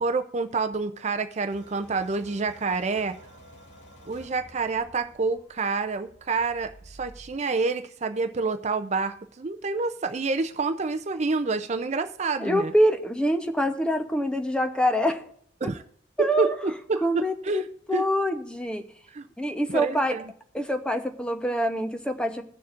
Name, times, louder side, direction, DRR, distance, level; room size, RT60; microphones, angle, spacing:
voice 1, 0.0-3.2 4.1-12.7 15.6-15.8 16.2-17.6 17.9-18.1 19.1-19.3 19.7-20.2, right 4 dB, 40° right, 9 dB, 0.5 m, -28 dB
sound 1, 1.5-7.4, equal, 90° left, 2.3 m, -51 dB
voice 2, 12.4-15.3 15.6-15.7 16.2-16.6 17.0-18.9 19.4-20.2 20.5-22.4, equal, 5° left, 6 dB, 0.8 m, -25 dB
20.5 x 6.9 x 2.5 m, 0.62 s
head